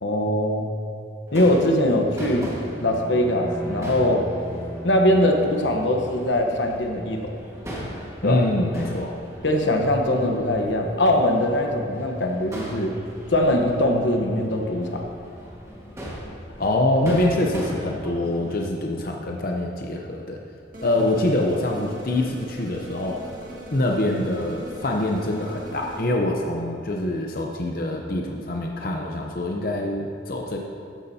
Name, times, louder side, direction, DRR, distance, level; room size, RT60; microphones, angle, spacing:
voice 1, 0.0-0.7 1.3-2.5 2.8-4.3 4.8-7.3 8.2-8.4 9.4-12.9 13.3-15.1 21.0-21.1, left 1 dB, 85° left, 3 dB, 1.1 m, -21 dB
Crowd / Fireworks, 1.3-18.6, equal, 15° right, 1.6 m, -39 dB
Bowed string instrument, 1.9-6.7, equal, 20° left, 0.8 m, -39 dB
voice 2, 8.2-9.1 16.6-20.4 20.8-23.2 23.7-30.6, left 1 dB, 50° left, 1 dB, 0.7 m, -25 dB
sound 1, 20.7-26.0, equal, 50° right, 2.0 m, -40 dB
13.5 x 9.7 x 2.8 m, 2.5 s
head